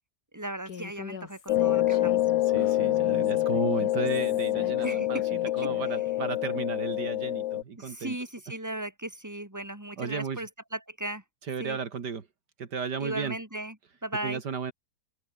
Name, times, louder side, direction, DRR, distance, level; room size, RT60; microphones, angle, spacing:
voice 1, 0.3-2.2 4.8-5.1 5.6-5.7 7.8-11.2 11.6-11.8 13.0-13.8 14.0-14.4, right 1 dB, 10° right, 4.0 m, -36 dB
Human voice, 0.7-5.9, left 7 dB, 65° left, 2.1 m, -44 dB
sound 1, 1.5-7.6, left 14 dB, 85° left, 1.3 m, -26 dB
voice 2, 2.5-8.2 10.0-10.4 11.5-12.3 12.6-13.4 14.2-14.7, right 6 dB, 70° right, 2.5 m, -34 dB
open air
omnidirectional pair, 1.9 m